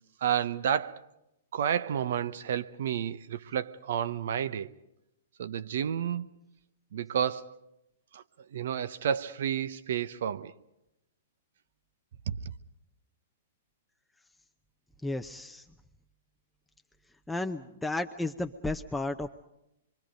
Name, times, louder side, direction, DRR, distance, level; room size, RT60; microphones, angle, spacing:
voice 1, 0.2-1.0 1.5-4.7 5.4-6.3 6.9-7.5 8.1-8.2 8.5-10.5 12.3-12.4, right 9 dB, 65° right, 1.0 m, -30 dB
voice 2, 15.0-15.6 17.3-19.3, left 2 dB, 5° left, 0.8 m, -33 dB
26.0 x 24.0 x 5.2 m
hypercardioid pair, 125°, 0 cm